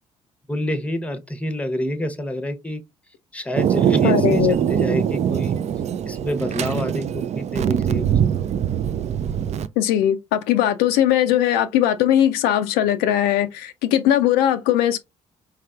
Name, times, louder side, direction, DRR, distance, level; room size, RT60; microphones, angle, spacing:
voice 1, 0.5-2.8 3.3-5.6 6.0-8.3, left 1 dB, 5° left, 0.8 m, -28 dB
Thunder, 3.6-9.7, right 9 dB, 40° right, 0.4 m, -22 dB
voice 2, 4.0-4.5 9.8-15.0, left 11 dB, 65° left, 0.4 m, -19 dB
4.7 x 3.2 x 2.3 m
figure-of-eight pair, 45°, 18 cm